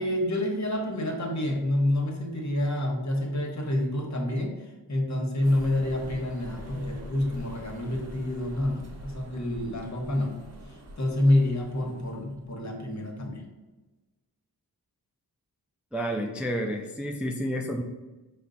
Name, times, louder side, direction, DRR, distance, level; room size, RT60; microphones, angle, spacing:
voice 1, 0.0-4.5 4.9-10.3 11.0-13.4, left 1 dB, 45° left, 1 dB, 1.0 m, -28 dB
sound 1, 5.4-12.4, equal, 40° right, 0.8 m, -45 dB
voice 2, 15.9-17.8, equal, 5° right, 2 dB, 0.3 m, -30 dB
4.4 x 2.1 x 3.8 m, 1.1 s
cardioid pair, 50°, 38 cm